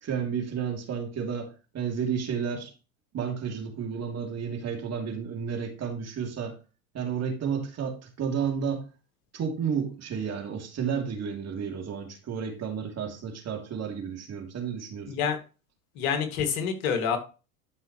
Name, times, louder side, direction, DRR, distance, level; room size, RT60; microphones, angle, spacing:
voice 1, 0.0-2.7 3.1-6.5 6.9-8.9 9.3-15.3, right 7 dB, 35° right, 2.9 m, -32 dB
voice 2, 15.1-15.4 16.0-17.2, left 7 dB, 65° left, 2.3 m, -27 dB
12.5 x 5.5 x 3.1 m
hypercardioid pair, 90°, 44 cm